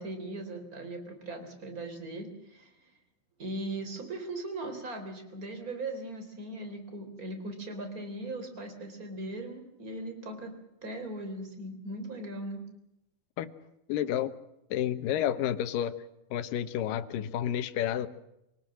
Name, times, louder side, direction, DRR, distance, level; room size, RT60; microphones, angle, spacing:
voice 1, 0.0-2.7 3.4-10.5 10.8-12.6, right 2 dB, 25° right, 7 dB, 3.9 m, -39 dB
voice 2, 13.9-14.4 14.7-16.0 16.3-18.1, left 11 dB, 75° left, 10 dB, 2.7 m, -30 dB
25.5 x 18.5 x 7.5 m, 0.85 s
omnidirectional pair, 4.1 m